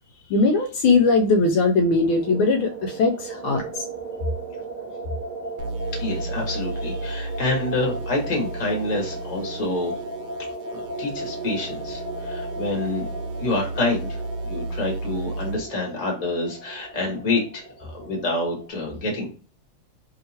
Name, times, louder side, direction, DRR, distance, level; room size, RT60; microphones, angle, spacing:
voice 1, 0.3-3.8, left 3 dB, 75° left, 4 dB, 1.3 m, -20 dB
sound 1, 1.8-18.7, right 2 dB, 60° right, 1.4 m, -36 dB
sound 2, 5.6-15.6, right 2 dB, 75° right, 1.5 m, -33 dB
voice 2, 6.0-9.9 10.7-13.0 13.4-14.2 14.5-19.3, left 2 dB, 20° left, 0 dB, 1.1 m, -27 dB
3.3 x 2.8 x 2.7 m, 0.38 s
omnidirectional pair, 2.4 m